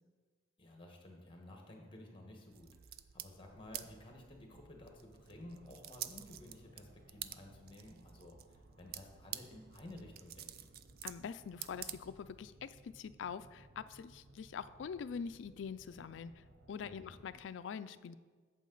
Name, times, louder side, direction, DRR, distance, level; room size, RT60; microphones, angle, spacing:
voice 1, 0.6-10.7 16.8-17.2, left 1 dB, 25° left, 2 dB, 1.3 m, -54 dB
sound 1, 2.5-12.5, right 12 dB, 50° right, 0.3 m, -50 dB
sound 2, 5.2-17.4, right 1 dB, 85° right, 1.0 m, -62 dB
voice 2, 11.0-18.2, left 6 dB, 70° left, 14 dB, 0.3 m, -44 dB
8.4 x 7.4 x 3.9 m, 1.5 s
head